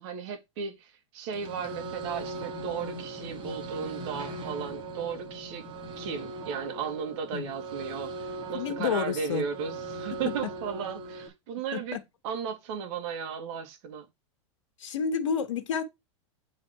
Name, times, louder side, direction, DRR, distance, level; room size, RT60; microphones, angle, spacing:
voice 1, 0.0-5.7 6.0-12.0 12.2-14.1, right 7 dB, 60° right, 2.5 m, -35 dB
sound 1, 1.3-11.3, right 3 dB, 30° right, 2.6 m, -39 dB
voice 2, 8.5-9.5 10.1-10.5 11.7-12.0 14.8-15.8, left 7 dB, 85° left, 1.2 m, -30 dB
8.7 x 4.3 x 4.5 m
hypercardioid pair, 110°, 16 cm